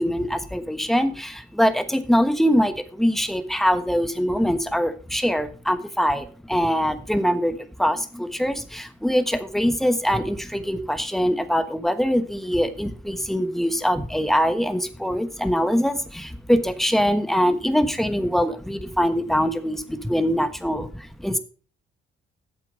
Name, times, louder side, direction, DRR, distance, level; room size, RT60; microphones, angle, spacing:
voice 1, 0.0-21.4, equal, ahead, 10 dB, 1.3 m, -23 dB
8.7 x 7.5 x 5.2 m, 0.39 s
cardioid pair, 90°, 20 cm